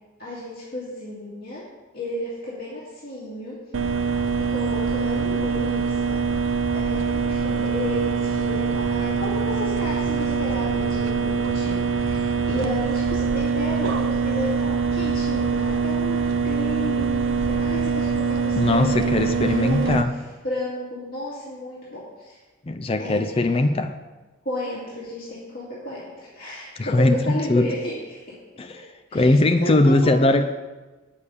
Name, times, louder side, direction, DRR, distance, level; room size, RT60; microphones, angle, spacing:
voice 1, 0.2-1.6 1.9-3.6 4.4-6.2 6.7-20.0 20.4-22.4 23.0-23.6 24.4-28.3 29.1-30.2, left 1 dB, 45° left, -8 dB, 2.6 m, -33 dB
sound 1, 3.7-20.0, right 5 dB, 70° right, 0.6 m, -24 dB
voice 2, 18.6-20.2 22.7-23.9 26.8-27.7 28.6-28.8 29.1-30.5, left 2 dB, 30° left, 7 dB, 0.5 m, -20 dB
8.9 x 6.9 x 6.6 m, 1.2 s
head